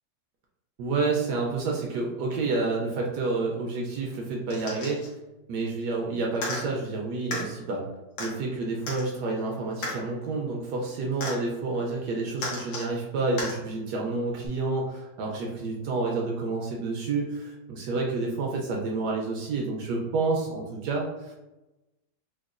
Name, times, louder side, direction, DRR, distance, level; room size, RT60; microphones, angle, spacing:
voice 1, 0.8-5.0 5.5-7.8 8.2-21.3, right 3 dB, 70° right, -1 dB, 1.0 m, -29 dB
sound 1, 4.5-5.1 6.3-6.6 7.3-7.4 8.2-8.3 8.9-9.0 9.8-10.0 11.2-11.4 12.4-12.9 13.4-13.5 14.4-14.5, left 2 dB, 80° left, 1.7 m, -33 dB
4.5 x 2.2 x 2.4 m, 1.0 s
omnidirectional pair, 2.0 m